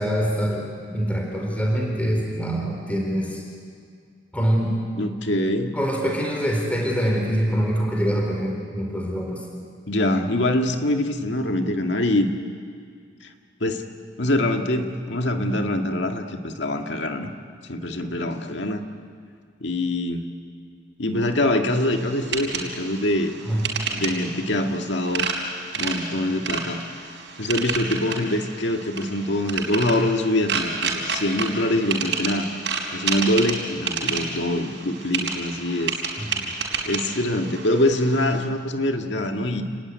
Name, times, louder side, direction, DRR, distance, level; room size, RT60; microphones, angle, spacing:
voice 1, 0.0-3.4 4.3-4.8 5.7-9.4 18.5-18.7 23.5-23.8 36.2-36.5, equal, 10° left, 0 dB, 4.0 m, -24 dB
voice 2, 5.0-5.7 9.9-12.3 13.6-13.8 14.2-17.3 17.7-18.9 19.6-20.3 21.0-23.3 23.9-25.3 25.7-26.8 27.4-32.5 32.9-35.9 36.9-39.6, left 1 dB, 70° left, 4 dB, 2.1 m, -24 dB
sound 1, 21.7-38.4, right 5 dB, 70° right, 5.0 m, -30 dB
29.5 x 20.0 x 9.7 m, 2.2 s
head